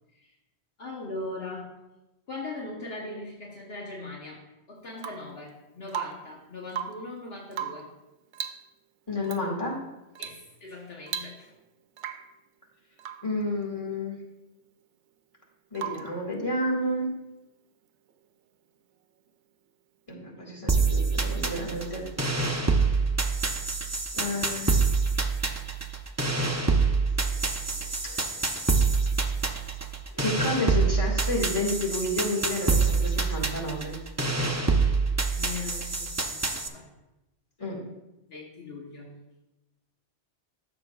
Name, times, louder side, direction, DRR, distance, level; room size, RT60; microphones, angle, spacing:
voice 1, 0.8-1.7 2.3-7.9 10.2-11.5 35.3-36.9 38.3-39.2, left 2 dB, 65° left, -2 dB, 1.3 m, -40 dB
Rain / Water tap faucet / Drip, 5.0-5.4 5.9-6.4 6.7-7.1 7.5-8.0 8.3-8.7 9.2-9.4 10.2-10.5 10.7-10.8 11.1-11.6 12.0-12.4 13.0-13.3 15.8-16.2 18.1-18.2, right 8 dB, 90° right, 0.9 m, -37 dB
voice 2, 9.1-9.7 13.2-14.2 15.7-17.1 20.1-22.0 24.1-24.8 28.0-28.5 30.1-33.9 37.6-37.8, left 1 dB, 30° left, -2 dB, 1.9 m, -30 dB
sound 1, 20.7-36.7, right 4 dB, 20° right, 0.4 m, -26 dB
13.5 x 6.7 x 2.3 m, 1.0 s
omnidirectional pair, 1.1 m